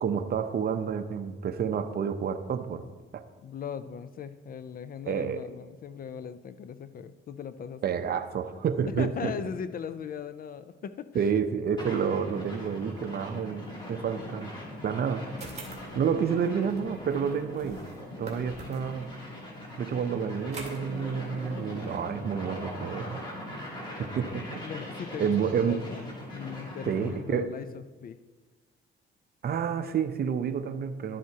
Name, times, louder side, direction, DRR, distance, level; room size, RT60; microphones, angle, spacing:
voice 1, 0.0-2.8 3.1-3.2 5.1-5.4 7.8-9.3 11.1-14.5 14.8-15.3 15.9-17.8 18.2-19.1 19.8-23.2 24.1-24.6 25.2-25.8 26.9-27.5 29.4-31.2, right 7 dB, 55° right, 10 dB, 0.7 m, -29 dB
voice 2, 3.4-7.8 9.0-11.1 24.1-26.0 26.3-28.2, left 7 dB, 45° left, 13 dB, 0.4 m, -39 dB
sound 1, 11.8-27.2, left 1 dB, 25° left, 2.9 m, -41 dB
sound 2, 15.4-19.0 20.4-22.0, right 3 dB, 35° right, 2.3 m, -46 dB
12.0 x 7.6 x 2.8 m, 1.3 s
cardioid pair, 90°, 20 cm